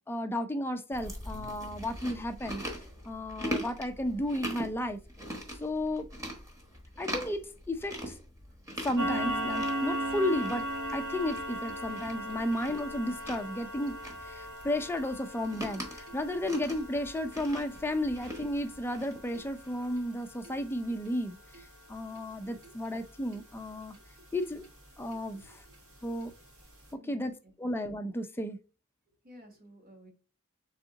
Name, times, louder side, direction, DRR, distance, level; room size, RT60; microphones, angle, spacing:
voice 1, 0.1-2.6 3.1-5.0 5.6-6.1 7.0-8.2 8.8-24.0 24.3-24.6 25.0-25.6 26.0-26.3 27.1-28.6, left 1 dB, 10° left, 0.4 m, -33 dB
Chewing mastication, 0.9-19.9, equal, 15° right, 1.1 m, -42 dB
sound 1, 9.0-24.1 24.4-24.7 25.1-25.2 25.6-25.7 26.2-26.3 26.6-26.7, equal, 65° right, 1.8 m, -38 dB
voice 2, 25.1-25.7 26.9-27.2 29.2-30.1, equal, 40° right, 1.4 m, -54 dB
3.9 x 3.5 x 3.7 m
head